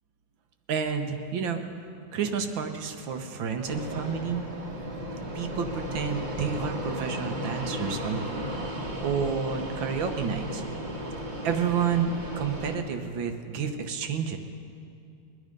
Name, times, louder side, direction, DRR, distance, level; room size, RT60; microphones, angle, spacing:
voice 1, 0.7-1.6 2.1-4.4 5.3-8.2 9.0-10.6 11.4-14.4, right 6 dB, 75° right, 6 dB, 1.7 m, -30 dB
Fixed-wing aircraft airplane, 3.7-12.7, equal, 25° right, 1.3 m, -35 dB
22.5 x 9.9 x 5.2 m, 2.5 s
omnidirectional pair, 2.2 m